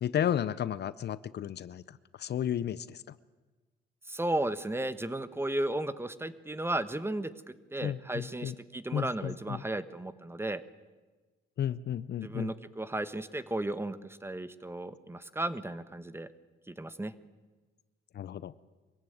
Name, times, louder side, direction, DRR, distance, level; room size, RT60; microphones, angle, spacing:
voice 1, 0.0-3.0 7.8-8.5 8.9-9.6 11.6-12.5 18.1-18.5, left 10 dB, 55° left, 18 dB, 0.7 m, -33 dB
voice 2, 4.1-7.3 7.7-10.6 12.2-16.3 16.7-17.1, right 1 dB, 10° right, 14 dB, 1.2 m, -34 dB
23.5 x 15.5 x 9.3 m, 1.3 s
cardioid pair, 90°, 20 cm